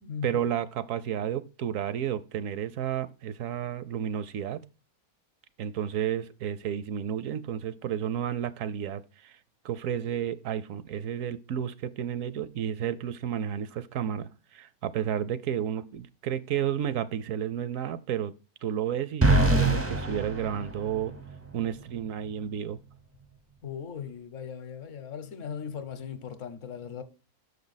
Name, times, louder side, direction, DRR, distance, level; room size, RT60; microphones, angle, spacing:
voice 1, 0.2-4.6 5.6-9.4 9.6-18.3 18.6-21.1 21.5-22.8, right 9 dB, 70° right, 0.9 m, -32 dB
sound 1, 19.2-21.3, right 2 dB, 20° right, 0.4 m, -24 dB
voice 2, 23.6-27.0, left 7 dB, 65° left, 1.1 m, -38 dB
6.6 x 5.4 x 3.9 m
omnidirectional pair, 1.5 m